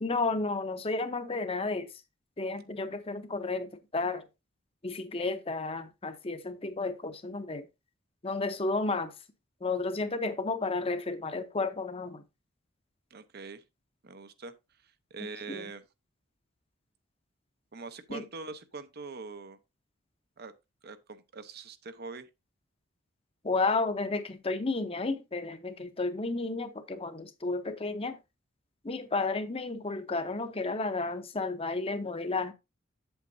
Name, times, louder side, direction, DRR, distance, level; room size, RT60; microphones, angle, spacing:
voice 1, 0.0-1.9 2.4-4.2 4.8-7.7 8.2-9.1 9.6-12.2 15.5-15.7 18.1-18.2 23.4-28.2 28.8-32.5, left 3 dB, 30° left, 0.8 m, -32 dB
voice 2, 13.1-13.6 14.0-14.5 14.8-15.8 17.7-19.6 20.4-20.5 20.8-22.3, right 4 dB, 55° right, 0.8 m, -43 dB
8.1 x 8.0 x 2.7 m
head